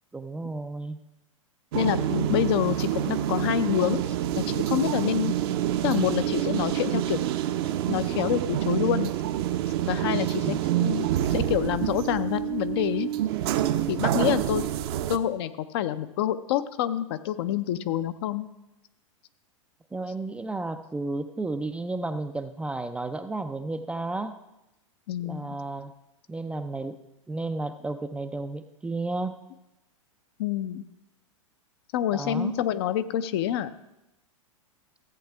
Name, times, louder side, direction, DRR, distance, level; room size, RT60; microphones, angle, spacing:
voice 1, 0.1-1.0 10.4-10.6 19.9-24.3 25.2-25.9 26.3-27.0 27.3-29.4 32.1-32.5, right 2 dB, 5° right, 7 dB, 0.4 m, -32 dB
voice 2, 1.7-4.0 4.4-5.3 5.8-7.2 7.9-9.1 9.9-13.1 13.9-14.6 15.1-18.5 25.1-25.6 30.4-30.8 31.9-33.7, left 11 dB, 50° left, 12 dB, 0.6 m, -27 dB
sound 1, 1.7-15.2, right 12 dB, 50° right, 0.7 m, -27 dB
14.5 x 8.0 x 3.4 m, 0.93 s
figure-of-eight pair, 100°, 17 cm